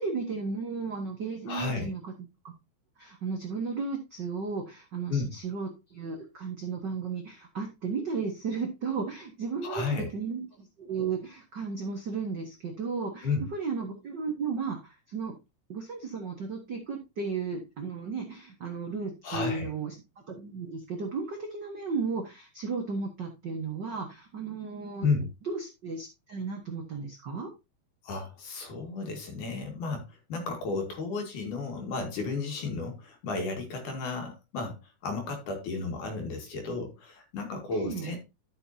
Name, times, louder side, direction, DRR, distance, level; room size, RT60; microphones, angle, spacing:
voice 1, 0.0-2.1 2.4-2.5 3.0-15.3 15.7-19.9 20.3-25.1 25.5-27.5 37.7-38.1, right 5 dB, 60° right, 2 dB, 1.1 m, -34 dB
voice 2, 1.5-1.9 5.1-5.4 9.6-10.1 13.2-13.5 19.2-19.7 25.0-25.3 28.0-38.2, left 4 dB, 60° left, 3 dB, 3.3 m, -33 dB
13.0 x 6.5 x 2.7 m, 0.25 s
omnidirectional pair, 4.2 m